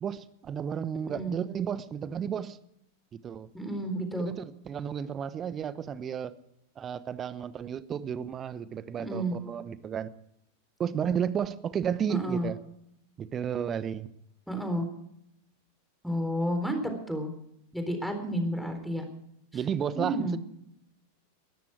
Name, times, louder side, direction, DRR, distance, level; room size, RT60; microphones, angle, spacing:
voice 1, 0.0-2.6 3.1-3.5 4.2-6.3 6.8-10.1 10.8-12.6 13.2-14.1 19.5-20.4, right 8 dB, 25° right, 16 dB, 1.0 m, -33 dB
voice 2, 1.0-1.3 3.5-4.3 9.0-9.3 12.1-12.5 14.5-14.9 16.0-17.3 17.7-19.0 20.0-20.4, right 1 dB, ahead, 5 dB, 3.9 m, -31 dB
19.0 x 13.5 x 4.9 m, 0.78 s
figure-of-eight pair, 90°, 0 cm